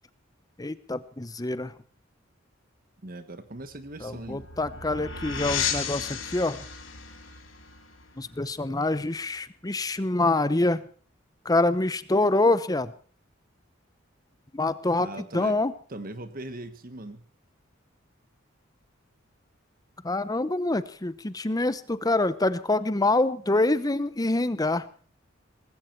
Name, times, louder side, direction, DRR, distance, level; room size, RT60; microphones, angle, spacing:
voice 1, 0.6-1.7 4.0-6.6 8.2-10.8 11.4-12.9 14.5-15.1 15.3-15.7 20.0-24.8, left 2 dB, 20° left, 15 dB, 0.8 m, -25 dB
voice 2, 3.0-4.5 15.0-15.6 15.9-17.2 20.7-20.8, right 2 dB, 45° right, 10 dB, 1.3 m, -40 dB
sound 1, 3.6-9.0, left 7 dB, 85° left, 2.8 m, -34 dB
19.0 x 15.5 x 4.5 m, 0.42 s
head